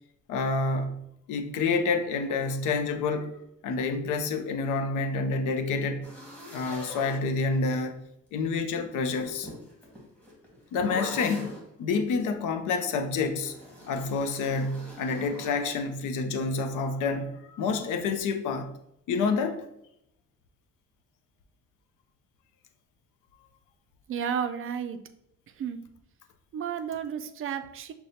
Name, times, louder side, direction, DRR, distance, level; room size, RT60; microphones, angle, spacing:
voice 1, 0.3-3.3 3.6-6.1 6.5-8.0 8.3-9.5 10.7-11.5 11.8-13.5 13.9-18.7 19.1-19.6, left 4 dB, 85° left, 7 dB, 0.6 m, -28 dB
sound 1, 6.0-7.8 9.0-11.7 13.4-15.7, equal, 5° left, 1.5 m, -43 dB
voice 2, 24.1-25.0 25.6-25.8 26.5-27.9, right 8 dB, 45° right, 10 dB, 0.4 m, -32 dB
6.4 x 2.3 x 2.7 m, 0.78 s
cardioid pair, 90°, 30 cm